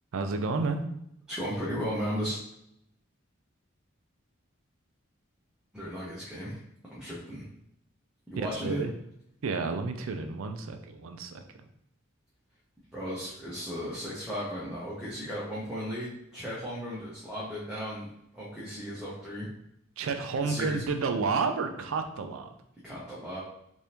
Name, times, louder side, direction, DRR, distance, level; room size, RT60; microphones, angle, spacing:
voice 1, 0.1-0.8 8.4-8.9 9.4-11.4 20.0-22.5, right 4 dB, 85° right, 7 dB, 0.4 m, -30 dB
voice 2, 1.3-2.4 5.7-6.6 6.9-7.5 8.3-8.9 12.9-18.1 18.3-19.5 20.4-20.8 22.8-23.4, equal, 5° right, -9 dB, 0.7 m, -35 dB
3.4 x 2.6 x 2.8 m, 0.77 s
head